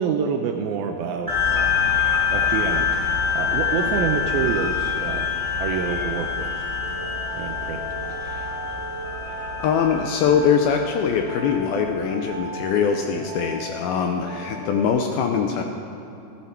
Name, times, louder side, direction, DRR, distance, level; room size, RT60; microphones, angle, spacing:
voice 1, 0.0-1.9 2.3-2.9 3.4-5.3 5.6-6.5 7.4-7.9, right 7 dB, 80° right, 4 dB, 2.2 m, -27 dB
sound 1, 1.3-12.1, left 6 dB, 15° right, 2.2 m, -25 dB
sound 2, 6.8-14.9, right 2 dB, 45° right, 2.2 m, -36 dB
voice 2, 8.2-8.6 9.3-15.6, left 7 dB, 80° left, 4 dB, 2.3 m, -23 dB
14.5 x 14.0 x 4.4 m, 2.9 s
omnidirectional pair, 4.8 m